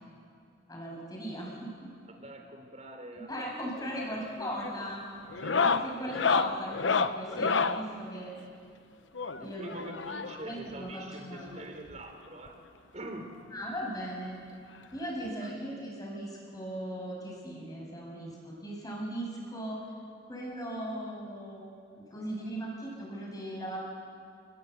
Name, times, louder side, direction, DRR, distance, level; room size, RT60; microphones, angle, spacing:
voice 1, 0.7-1.9 3.3-5.0 5.6-8.3 9.3-9.8 10.4-11.5 13.5-14.4 14.9-19.9 20.3-21.7 22.0-23.8, equal, 20° left, -2 dB, 6.8 m, -38 dB
voice 2, 2.1-4.8 5.4-6.3 9.4-12.6 12.9-13.4 15.4-15.5, right 1 dB, 35° right, 4 dB, 3.5 m, -45 dB
sound 1, 3.8-4.1 4.4-4.8 5.3-7.8 9.2-10.5 11.6-11.7 11.9-12.0 12.5-12.6 13.9-14.0 15.3-15.4, left 5 dB, 75° left, 0.9 m, -29 dB
28.5 x 21.0 x 8.0 m, 2.3 s
head